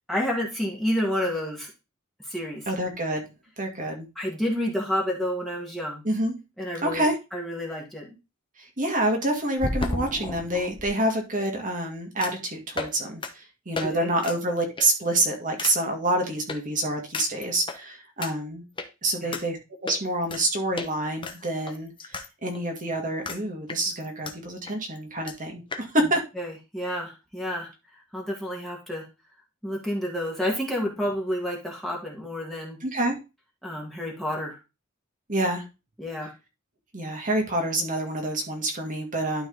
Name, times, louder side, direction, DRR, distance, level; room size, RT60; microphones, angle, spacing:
voice 1, 0.1-1.7 2.2-2.7 4.1-6.0 6.6-8.1 13.8-14.1 19.2-19.3 26.4-29.1 29.6-32.8 33.6-34.6 36.0-36.3, equal, ahead, -3 dB, 1.8 m, -30 dB
voice 2, 2.7-3.2 3.6-4.1 6.0-6.3 6.8-7.2 8.6-18.6 19.0-19.6 19.8-21.9 22.4-26.2 32.8-33.2 35.3-35.6 36.9-39.5, right 1 dB, 40° right, 3 dB, 2.0 m, -27 dB
sound 1, 9.6-10.9 12.2-12.4 12.7-12.9 13.2-13.3 13.7-13.9 14.2-14.4 14.8-15.0 15.6-15.7 16.5-16.6 17.1-17.8 18.2-18.3 18.8-18.9 19.3-19.4 19.9-20.4 20.8-20.9 21.2-22.3 22.5-22.6 23.2-23.4 23.7-24.3 24.7-24.8 25.0-25.1 25.3-25.4 25.7-25.8, left 3 dB, 25° left, 0.9 m, -32 dB
12.0 x 4.0 x 3.9 m, 0.28 s
head